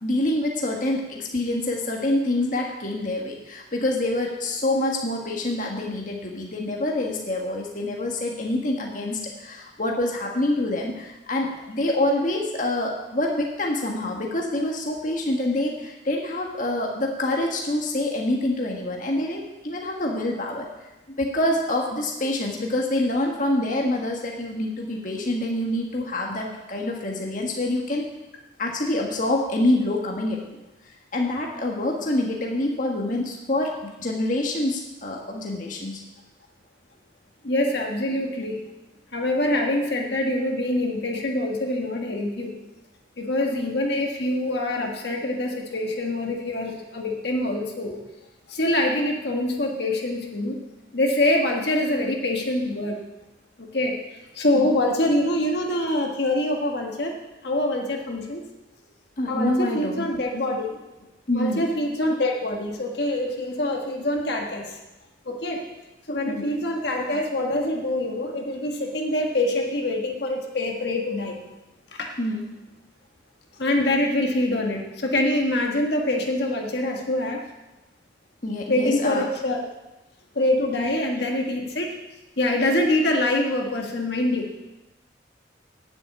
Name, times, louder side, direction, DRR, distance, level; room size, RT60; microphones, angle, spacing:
voice 1, 0.0-20.7 21.2-28.1 28.6-30.4 31.1-36.0 54.5-54.7 59.2-60.1 61.3-61.7 66.3-66.5 72.2-72.5 78.4-79.3 80.8-80.9, left 1 dB, 45° left, 0 dB, 1.6 m, -26 dB
voice 2, 37.4-38.6 39.1-42.5 43.2-48.0 48.5-50.6 50.9-53.0 53.6-54.0 54.3-58.4 59.3-60.8 61.3-64.8 65.2-65.6 66.1-71.4 71.9-72.1 73.6-77.5 78.7-79.6 80.3-81.9 82.4-84.5, left 1 dB, 60° left, 1 dB, 1.6 m, -25 dB
9.5 x 8.0 x 8.4 m, 1.0 s
head